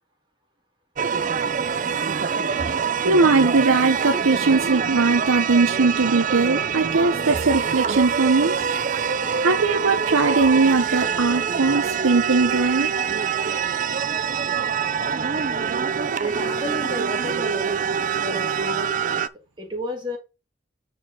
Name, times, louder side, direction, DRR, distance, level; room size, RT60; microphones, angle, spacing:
sound 1, 1.0-19.3, right 6 dB, 40° right, 0.4 m, -25 dB
voice 1, 2.6-8.5 9.3-12.9, right 3 dB, 85° right, 0.8 m, -20 dB
voice 2, 9.0-9.4 11.6-11.7 12.7-13.1 16.2-19.2 19.6-20.2, left 1 dB, 25° right, 2.1 m, -33 dB
8.8 x 4.4 x 3.7 m
head